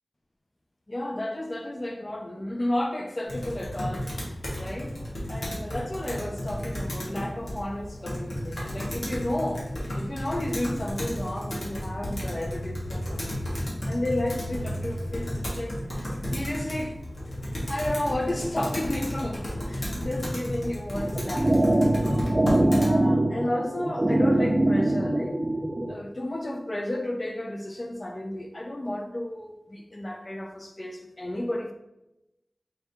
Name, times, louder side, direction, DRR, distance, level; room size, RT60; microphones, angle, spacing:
voice 1, 0.9-4.1 4.6-5.0 5.3-9.7 10.0-13.5 13.9-17.0 17.5-21.6 22.0-25.4 25.9-31.7, left 1 dB, 35° left, 3 dB, 0.4 m, -32 dB
Computer keyboard, 3.3-22.9, equal, 75° left, 1.4 m, -33 dB
sound 1, 21.0-25.9, right 1 dB, 30° right, 0.5 m, -23 dB
4.6 x 2.7 x 3.3 m, 0.92 s
wide cardioid pair, 55°, 0 cm